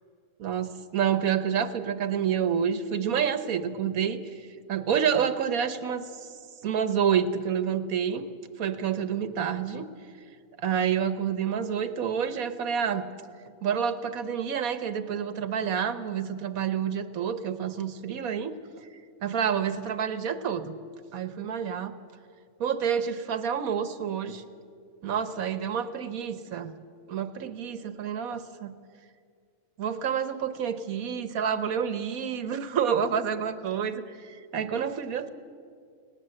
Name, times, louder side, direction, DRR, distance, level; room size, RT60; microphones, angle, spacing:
voice 1, 0.4-4.2 4.7-6.0 6.6-8.2 8.6-9.9 10.6-13.0 13.6-18.5 19.2-20.7 21.1-21.9 22.6-24.4 25.0-26.7 27.1-28.7 29.8-35.3, right 8 dB, 85° right, 11 dB, 1.5 m, -28 dB
19.0 x 18.5 x 7.8 m, 2.2 s
omnidirectional pair, 1.4 m